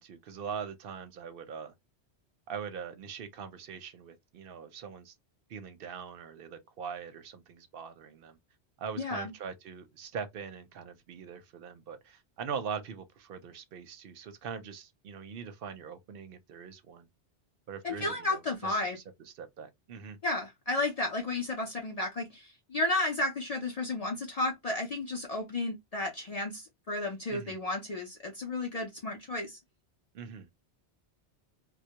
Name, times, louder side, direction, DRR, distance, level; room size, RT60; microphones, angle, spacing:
voice 1, 0.0-1.7 2.5-5.1 5.5-8.4 8.8-17.1 17.7-20.2 27.3-27.6 30.1-30.5, right 6 dB, 60° right, 0.7 m, -42 dB
voice 2, 9.0-9.3 17.8-19.0 20.2-29.6, left 2 dB, 55° left, 0.4 m, -33 dB
2.2 x 2.0 x 2.7 m
omnidirectional pair, 1.2 m